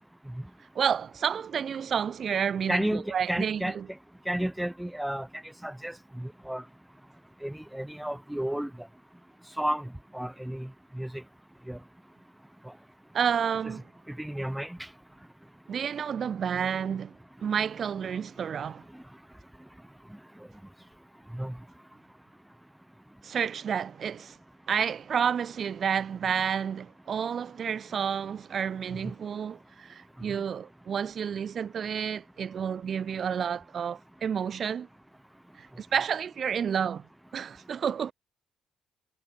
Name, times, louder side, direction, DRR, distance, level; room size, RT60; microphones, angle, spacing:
voice 1, 0.8-3.9 13.1-13.9 15.7-17.1 17.4-18.8 23.2-24.4 24.7-34.9 35.6-37.1 37.3-38.1, right 7 dB, 55° right, 1.8 m, -30 dB
voice 2, 2.7-3.8 4.3-5.3 5.6-6.6 7.4-8.7 9.6-11.2 11.7-11.8 13.6-13.7 14.1-14.8 21.3-21.6, right 1 dB, 5° right, 2.3 m, -32 dB
cardioid pair, 90°, 0 cm